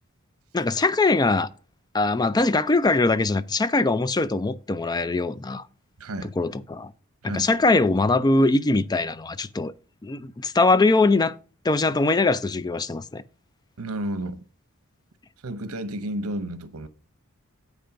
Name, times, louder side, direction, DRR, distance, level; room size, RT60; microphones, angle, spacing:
voice 1, 0.5-1.5 1.9-5.7 6.4-6.9 7.2-9.7 10.0-11.4 11.6-13.2, left 3 dB, 20° left, 0.4 m, -22 dB
voice 2, 6.0-6.3 7.2-7.5 13.8-14.4 15.4-16.9, right 1 dB, 85° right, 0.9 m, -31 dB
8.2 x 5.1 x 5.7 m
head